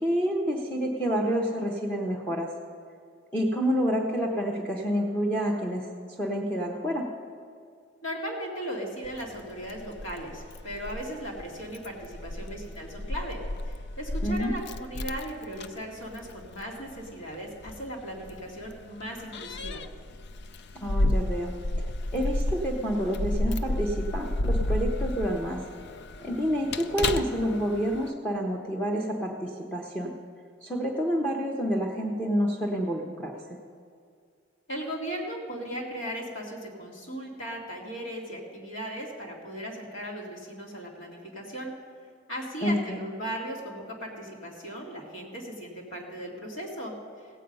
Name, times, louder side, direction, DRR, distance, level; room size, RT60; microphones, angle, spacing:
voice 1, 0.0-2.5 3.3-7.0 14.2-14.5 20.8-25.6 26.2-30.1 30.6-33.3 42.6-43.0, equal, 10° left, 0 dB, 0.9 m, -28 dB
voice 2, 8.0-19.8 34.7-41.7 42.3-47.3, equal, 75° left, -1 dB, 2.3 m, -37 dB
Keys jangling, 9.0-28.1, left 1 dB, 60° left, 0.5 m, -32 dB
16.5 x 8.3 x 5.4 m, 2.2 s
head